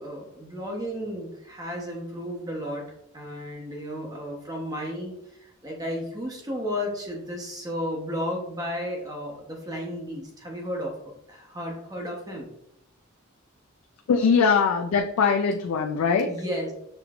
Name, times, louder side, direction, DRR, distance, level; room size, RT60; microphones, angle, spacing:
voice 1, 0.0-2.8 3.1-12.5 16.3-16.8, equal, 20° right, -1 dB, 0.9 m, -33 dB
voice 2, 14.1-16.3, left 5 dB, 90° left, 4 dB, 0.4 m, -21 dB
6.6 x 3.1 x 2.4 m, 0.77 s
head